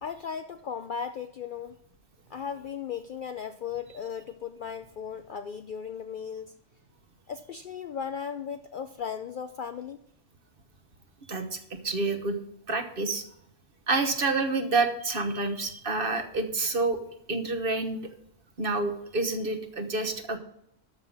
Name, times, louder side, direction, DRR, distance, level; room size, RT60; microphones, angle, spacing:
voice 1, 0.0-1.8 2.3-6.5 7.3-10.0, left 7 dB, 60° left, 9 dB, 0.5 m, -36 dB
voice 2, 11.3-11.6 11.8-12.4 12.7-13.2 13.9-17.0 17.3-18.1 18.6-20.4, right 3 dB, 45° right, 7 dB, 1.2 m, -28 dB
13.0 x 5.6 x 6.2 m, 0.75 s
omnidirectional pair, 1.3 m